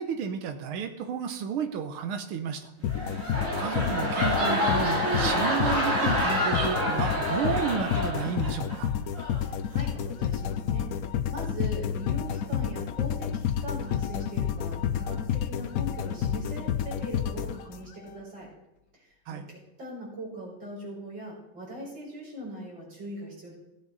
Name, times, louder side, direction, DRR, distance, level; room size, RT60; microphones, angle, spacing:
voice 1, 0.0-2.7 3.6-8.9 19.3-19.5, right 7 dB, 80° right, 6 dB, 1.8 m, -32 dB
sound 1, 2.8-18.1, left 9 dB, 85° left, 0.7 m, -30 dB
sound 2, 2.8-8.8 9.1-9.5, equal, 35° right, 2.9 m, -28 dB
voice 2, 9.4-10.9 11.3-18.5 19.3-23.5, equal, 60° right, -4 dB, 5.5 m, -40 dB
16.5 x 8.6 x 4.0 m, 0.93 s
omnidirectional pair, 2.3 m